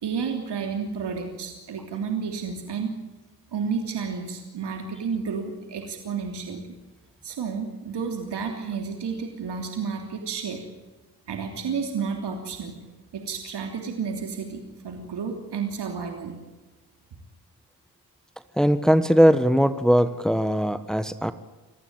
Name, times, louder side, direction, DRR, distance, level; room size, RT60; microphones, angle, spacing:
voice 1, 0.0-3.0 3.5-6.7 7.2-10.6 11.3-12.7 13.1-16.3, right 5 dB, 80° right, 3 dB, 3.2 m, -31 dB
voice 2, 18.5-21.3, equal, ahead, 12 dB, 1.3 m, -20 dB
26.5 x 15.5 x 9.0 m, 1.2 s
cardioid pair, 50°, 41 cm